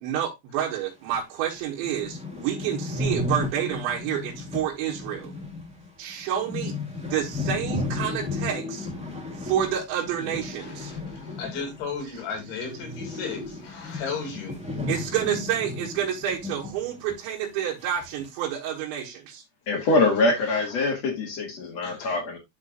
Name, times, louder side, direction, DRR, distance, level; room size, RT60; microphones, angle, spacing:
voice 1, 0.0-5.3 6.0-6.8 7.1-8.9 9.4-10.9 14.9-19.4, right 10 dB, 75° right, 3.6 m, -29 dB
sound 1, 1.1-1.2 1.6-1.7 1.8-12.1 12.3-16.8 17.1-17.2 17.8-18.2, left 2 dB, 5° right, 0.6 m, -34 dB
voice 2, 10.6-14.6 20.8-20.9 21.8-22.2, left 5 dB, 75° left, 5.0 m, -35 dB
voice 3, 19.7-22.4, left 2 dB, 50° left, 2.2 m, -24 dB
12.0 x 4.5 x 2.4 m
omnidirectional pair, 5.4 m